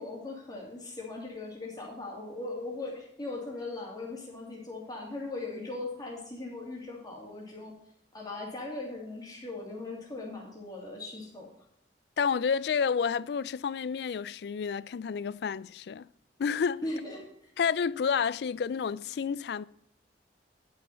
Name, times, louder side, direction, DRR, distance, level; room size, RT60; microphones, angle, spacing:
voice 1, 0.0-7.7 8.1-11.5 16.8-17.5, left 2 dB, 20° left, 2.8 m, -39 dB
voice 2, 12.2-16.1 16.4-16.8 17.6-19.6, left 6 dB, 65° left, 0.3 m, -30 dB
10.5 x 6.2 x 5.5 m
head